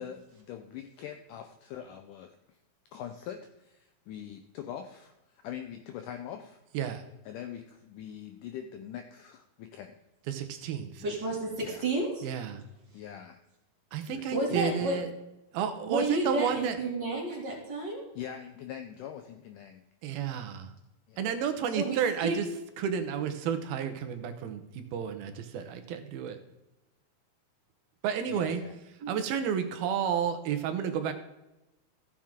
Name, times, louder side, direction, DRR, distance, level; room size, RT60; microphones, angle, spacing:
voice 1, 0.0-2.4 2.9-6.6 7.3-10.0 11.5-11.9 12.9-13.4 14.1-15.0 18.2-19.8 21.1-21.3 28.3-28.7, left 9 dB, 80° left, 1.9 m, -43 dB
voice 2, 10.3-11.0 12.2-12.6 13.9-15.1 15.5-16.8 20.0-20.7 21.2-22.5 22.8-26.4 28.0-28.6 29.1-31.1, right 8 dB, 85° right, 2.7 m, -31 dB
voice 3, 11.0-12.2 14.3-15.0 15.8-18.1 21.7-22.4 29.0-29.1, right 2 dB, 35° right, 2.3 m, -31 dB
14.5 x 7.5 x 3.7 m
omnidirectional pair, 4.4 m